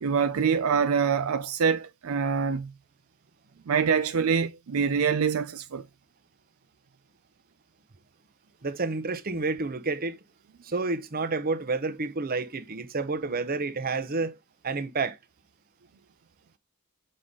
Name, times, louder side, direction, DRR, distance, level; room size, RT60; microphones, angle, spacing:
voice 1, 0.0-2.7 3.7-5.9, right 6 dB, 70° right, 0.5 m, -25 dB
voice 2, 8.6-10.2 10.6-14.4 14.6-15.2, right 3 dB, 45° right, 0.8 m, -29 dB
6.5 x 4.0 x 3.7 m
head